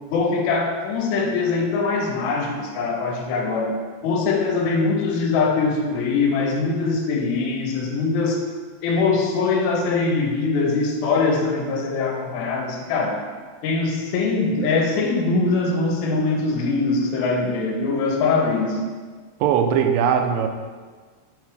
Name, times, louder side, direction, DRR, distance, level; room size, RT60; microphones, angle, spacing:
voice 1, 0.1-3.7 4.0-8.4 8.8-13.2 13.6-18.8, left 4 dB, 75° left, 2 dB, 1.9 m, -22 dB
voice 2, 19.4-20.5, right 8 dB, 80° right, 5 dB, 2.2 m, -19 dB
4.8 x 4.5 x 4.7 m, 1.5 s
omnidirectional pair, 4.0 m